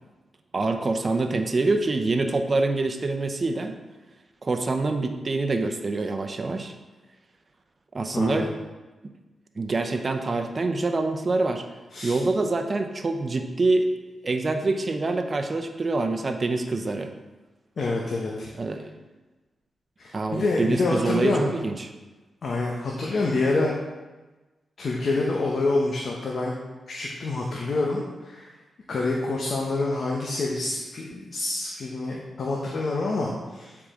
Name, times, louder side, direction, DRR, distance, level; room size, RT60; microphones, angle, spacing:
voice 1, 0.5-3.7 4.4-6.7 7.9-8.5 9.6-11.6 12.0-13.8 14.2-17.1 18.6-18.9 20.1-21.9, right 3 dB, 45° right, 6 dB, 0.7 m, -25 dB
voice 2, 8.1-8.5 11.9-12.2 17.8-18.5 20.0-21.5 22.4-23.7 24.8-26.5 26.9-28.5 28.9-33.8, left 2 dB, 60° left, -2 dB, 1.1 m, -27 dB
8.8 x 4.8 x 3.8 m, 1.2 s
cardioid pair, 55°, 0 cm